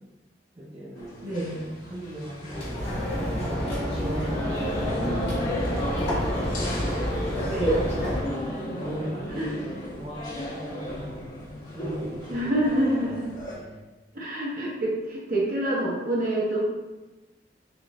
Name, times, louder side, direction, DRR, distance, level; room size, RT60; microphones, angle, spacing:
voice 1, 0.5-3.0 3.4-4.5 4.8-6.1 7.0-7.3 8.0-11.2 11.7-13.2 13.5-13.8, right 1 dB, 25° right, -8 dB, 0.6 m, -38 dB
sound 1, 0.9-13.5, left 1 dB, 50° left, 1.3 m, -35 dB
voice 2, 1.2-1.6 7.4-7.8 8.4-8.8 9.4-9.5 12.3-13.3 14.1-16.6, right 1 dB, 50° right, -4 dB, 1.0 m, -27 dB
sound 2, 2.5-8.2, equal, 35° left, 1.3 m, -28 dB
3.7 x 2.6 x 3.6 m, 1.1 s
head